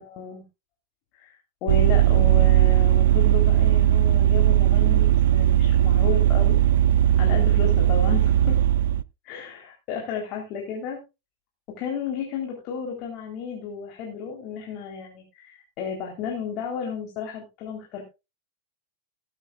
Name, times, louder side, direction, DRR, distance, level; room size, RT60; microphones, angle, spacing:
voice 1, 0.0-0.4 1.1-6.6 7.1-8.6 9.2-11.0 11.8-18.0, left 6 dB, 40° left, 1 dB, 3.8 m, -33 dB
Vehicle, 1.7-9.0, right 12 dB, 60° right, 0.5 m, -18 dB
20.0 x 9.1 x 2.4 m, 0.27 s
figure-of-eight pair, 90°, 0 cm